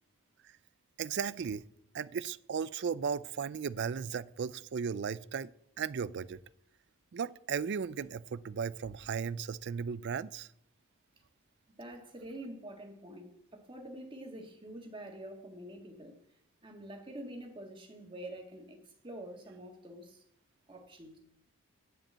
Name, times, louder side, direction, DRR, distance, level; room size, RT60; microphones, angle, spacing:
voice 1, 1.0-1.6 1.9-5.5 5.8-6.4 7.1-10.5, right 6 dB, 50° right, 0.4 m, -36 dB
voice 2, 11.8-16.1 16.6-20.2 20.7-21.2, right 1 dB, 25° right, 1.6 m, -46 dB
10.0 x 5.2 x 7.4 m
head